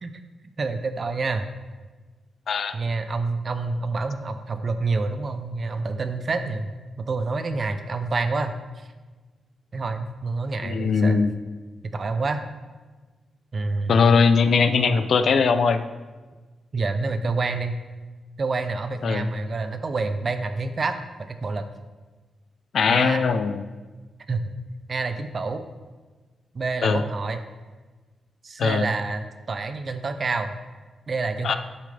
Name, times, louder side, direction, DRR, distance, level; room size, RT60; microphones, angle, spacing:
voice 1, 0.6-1.5 2.7-6.7 7.1-8.9 9.7-11.3 11.9-12.4 13.5-14.1 16.7-17.8 18.4-20.9 21.3-21.6 22.9-23.2 24.3-24.5 24.9-25.6 26.5-27.4 28.4-30.6 31.1-31.6, right 3 dB, 35° right, 8 dB, 0.6 m, -27 dB
voice 2, 10.6-11.3 13.9-15.8 19.0-19.3 22.7-23.6 26.8-27.0 28.6-28.9 31.4-31.6, left 5 dB, 55° left, 10 dB, 0.5 m, -20 dB
10.5 x 8.3 x 3.5 m, 1.3 s
wide cardioid pair, 180°, 0 cm